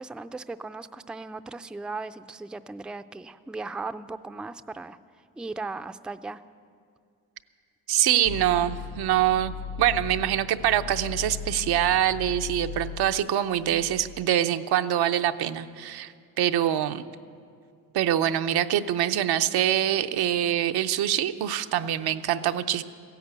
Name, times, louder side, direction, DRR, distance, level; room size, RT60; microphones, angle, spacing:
voice 1, 0.0-5.0 5.4-6.4, right 3 dB, ahead, 11 dB, 0.4 m, -37 dB
voice 2, 7.9-16.1 16.4-17.0 17.9-22.8, right 11 dB, 80° right, 9 dB, 0.7 m, -24 dB
sound 1, 8.3-14.2, left 7 dB, 65° left, 0.5 m, -37 dB
15.5 x 10.5 x 8.1 m, 2.3 s
cardioid pair, 75°, 38 cm